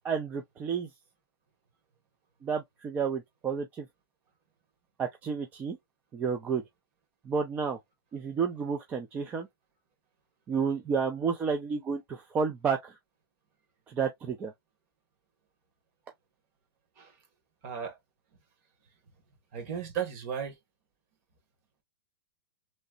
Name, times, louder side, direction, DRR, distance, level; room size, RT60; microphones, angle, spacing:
voice 1, 0.0-0.9 2.4-3.9 5.0-5.8 6.1-6.6 7.2-7.8 8.1-9.5 10.5-13.0 13.9-14.5, right 6 dB, 15° right, 0.3 m, -31 dB
voice 2, 17.6-18.0 19.5-20.6, right 8 dB, 40° right, 1.4 m, -35 dB
3.1 x 2.8 x 2.3 m
hypercardioid pair, 160°, 12 cm